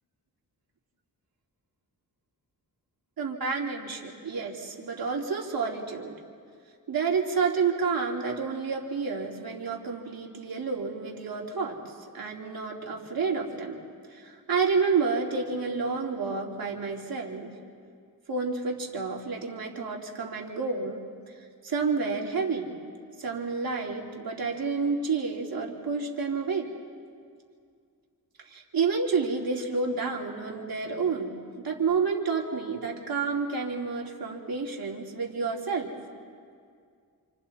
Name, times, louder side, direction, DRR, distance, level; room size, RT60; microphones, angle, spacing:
voice 1, 3.2-6.2 6.9-13.8 14.1-17.5 18.3-21.0 21.6-22.7 23.2-26.7 28.4-35.9, right 5 dB, 65° right, -2 dB, 2.7 m, -29 dB
29.0 x 27.5 x 4.2 m, 2.2 s
wide cardioid pair, 165°, 39 cm